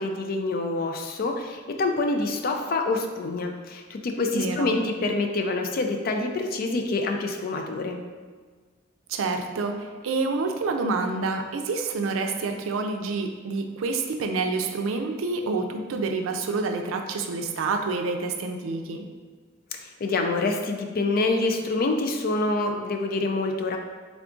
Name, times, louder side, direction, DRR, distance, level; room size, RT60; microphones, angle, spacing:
voice 1, 0.0-8.0 19.7-23.8, left 2 dB, 45° left, 4 dB, 0.3 m, -26 dB
voice 2, 4.3-4.8 9.1-19.0, right 3 dB, 85° right, 5 dB, 0.4 m, -28 dB
3.6 x 2.4 x 3.7 m, 1.5 s
head